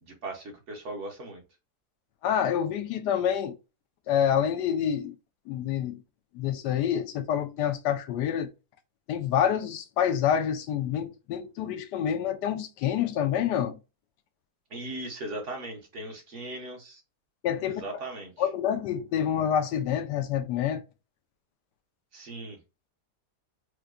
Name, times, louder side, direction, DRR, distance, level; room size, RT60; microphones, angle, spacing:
voice 1, 0.0-1.4 14.7-17.0 17.6-18.5 22.1-22.6, right 2 dB, 50° right, 1.1 m, -38 dB
voice 2, 2.2-3.6 4.1-5.2 5.5-6.0 6.3-8.5 9.1-13.8 17.4-17.8 18.4-20.8, left 9 dB, 85° left, 1.2 m, -27 dB
4.6 x 2.2 x 2.5 m
omnidirectional pair, 1.8 m